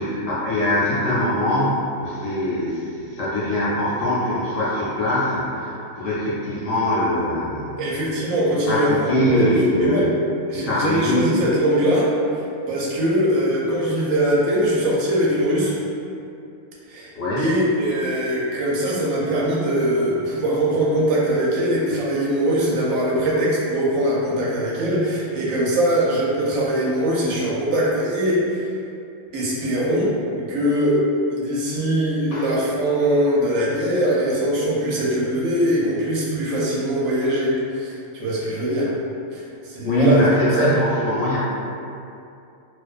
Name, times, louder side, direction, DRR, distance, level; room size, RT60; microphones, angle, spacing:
voice 1, 0.0-7.8 8.7-10.1 10.5-11.4 17.1-17.5 32.3-32.4 39.8-41.5, left 1 dB, 70° left, -9 dB, 1.0 m, -22 dB
voice 2, 7.8-9.4 9.8-10.1 10.5-12.1 12.7-15.8 16.9-17.1 17.4-28.7 29.3-31.0 31.3-38.9 39.3-40.3 40.6-40.8, right 1 dB, 75° right, -6 dB, 1.0 m, -21 dB
2.5 x 2.2 x 2.3 m, 2.6 s
omnidirectional pair, 1.4 m